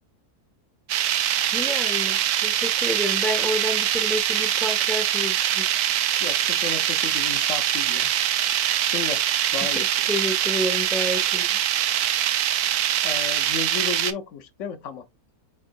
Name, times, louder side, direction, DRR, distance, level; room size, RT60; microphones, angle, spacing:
sound 1, 0.9-14.1, right 11 dB, 80° right, 1.1 m, -23 dB
voice 1, 1.5-5.7 9.6-9.8 10.1-11.6, left 1 dB, ahead, 0.6 m, -29 dB
voice 2, 6.2-8.1 8.8-9.2 9.5-9.9 13.0-15.1, left 6 dB, 60° left, 1.0 m, -33 dB
4.8 x 4.4 x 2.4 m
omnidirectional pair, 1.6 m